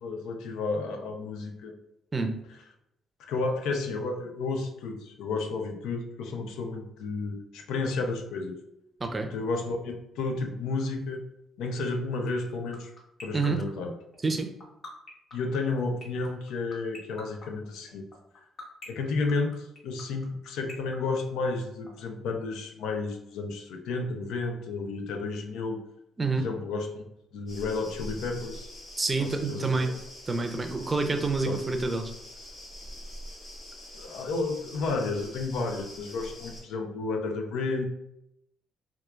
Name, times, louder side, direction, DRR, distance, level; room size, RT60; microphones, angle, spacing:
voice 1, 0.0-1.7 3.3-8.6 9.2-11.2 11.6-12.9 13.2-13.9 15.3-18.1 18.3-18.5 18.9-25.8 26.4-27.0 27.3-28.7 29.2-30.0 31.4-31.6 33.9-37.9, left 3 dB, 90° left, 4 dB, 0.5 m, -32 dB
sound 1, 12.3-21.9, left 3 dB, 45° left, 1.0 m, -43 dB
sound 2, 27.5-36.6, equal, 70° left, 1.3 m, -44 dB
voice 2, 29.0-29.9 30.3-32.1, right 3 dB, 25° right, 5 dB, 0.5 m, -27 dB
4.3 x 2.3 x 2.3 m, 0.80 s
cardioid pair, 90°, 0 cm